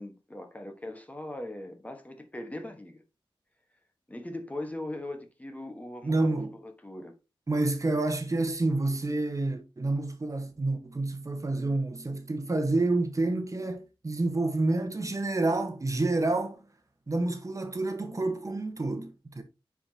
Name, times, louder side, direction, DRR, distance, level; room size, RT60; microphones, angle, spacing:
voice 1, 0.0-3.0 4.1-7.1, left 1 dB, 15° left, 1.3 m, -40 dB
voice 2, 6.0-6.5 7.5-16.6 17.1-19.4, right 2 dB, 35° right, 1.2 m, -28 dB
9.8 x 4.9 x 2.8 m
wide cardioid pair, 95°, 9 cm